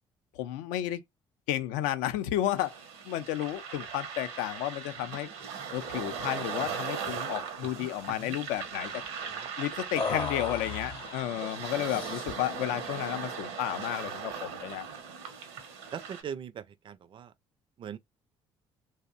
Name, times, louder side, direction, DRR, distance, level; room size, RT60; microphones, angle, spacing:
voice 1, 0.4-1.0 1.5-2.7 3.0-5.3 5.7-8.9 9.6-14.9, left 13 dB, 70° left, 0.4 m, -32 dB
sound 1, 2.6-16.2, right 6 dB, 75° right, 0.7 m, -39 dB
sound 2, 6.6-6.8 7.1-7.3 7.6-8.4 10.0-11.2 11.8-12.5, left 4 dB, 40° left, 0.7 m, -36 dB
voice 2, 15.9-17.3 17.8-18.0, right 8 dB, 40° right, 0.4 m, -40 dB
2.6 x 2.0 x 2.4 m
hypercardioid pair, 50°, 13 cm